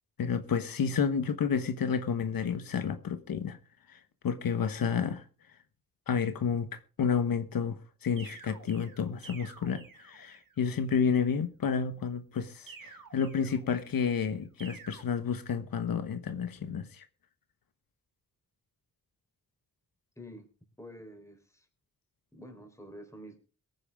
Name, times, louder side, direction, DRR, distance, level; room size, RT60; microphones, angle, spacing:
voice 1, 0.2-3.6 3.9-5.2 6.1-17.0, left 6 dB, 80° left, 1.3 m, -30 dB
sound 1, 8.2-10.6 12.7-14.0 14.6-15.0, right 5 dB, 70° right, 3.1 m, -51 dB
voice 2, 20.2-20.5 20.8-21.7 22.3-23.4, equal, 10° left, 4.0 m, -48 dB
22.5 x 9.5 x 3.6 m
wide cardioid pair, 125°, 34 cm